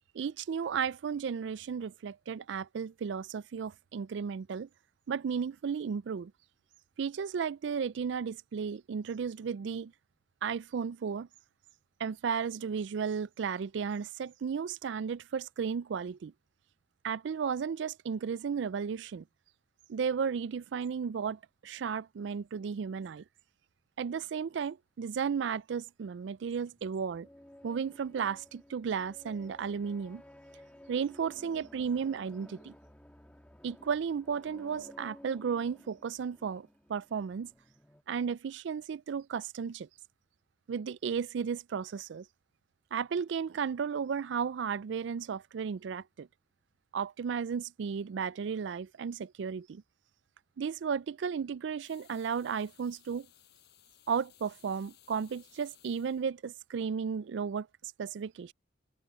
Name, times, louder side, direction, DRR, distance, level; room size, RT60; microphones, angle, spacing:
voice 1, 0.1-4.7 5.1-6.3 7.0-9.9 10.4-11.3 12.0-16.3 17.0-19.2 19.9-23.2 24.0-27.3 27.6-30.2 30.9-32.7 33.6-37.5 38.1-39.9 40.7-42.3 42.9-46.3 46.9-49.8 50.6-53.3 54.1-58.5, right 6 dB, 70° right, 0.4 m, -34 dB
sound 1, 26.4-38.0, left 1 dB, 5° left, 1.6 m, -55 dB
sound 2, 51.8-56.3, left 12 dB, 60° left, 7.3 m, -61 dB
open air
head